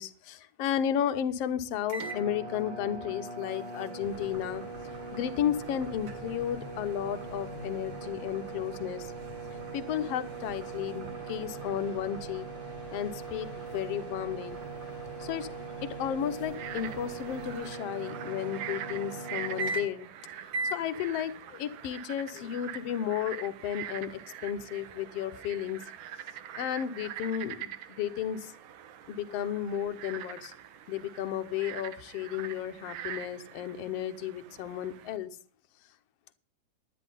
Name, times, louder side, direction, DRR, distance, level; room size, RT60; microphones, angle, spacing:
voice 1, 0.0-4.6 5.1-9.1 9.7-12.5 12.9-14.6 15.2-15.5 15.8-20.1 20.7-25.8 26.6-28.5 29.1-30.5 30.9-35.3, left 10 dB, 70° left, 9 dB, 1.5 m, -33 dB
sound 1, 1.9-20.1 20.5-20.8, right 4 dB, 50° right, 2.0 m, -40 dB
sound 2, 4.0-17.7, left 5 dB, 55° left, 1.3 m, -50 dB
Frog, 16.4-35.2, right 10 dB, 85° right, 2.5 m, -44 dB
11.0 x 10.5 x 5.3 m, 0.41 s
omnidirectional pair, 3.6 m